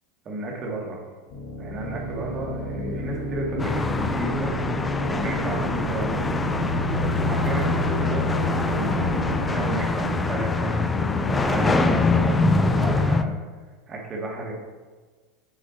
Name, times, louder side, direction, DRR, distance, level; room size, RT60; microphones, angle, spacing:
voice 1, 0.3-1.0 1.6-4.5 5.1-6.6 7.2-10.9 11.2-13.4 13.9-14.5, right 2 dB, 35° right, -2 dB, 2.1 m, -33 dB
sound 1, 1.3-13.0, left 1 dB, 55° left, 1.6 m, -30 dB
Thunder, 1.7-2.2 2.4-2.5 3.5-9.8, right 1 dB, 85° right, 2.3 m, -35 dB
sound 2, 3.6-13.2, left 3 dB, 15° left, 0.5 m, -24 dB
8.8 x 6.6 x 2.8 m, 1.4 s
figure-of-eight pair, 80°, 0 cm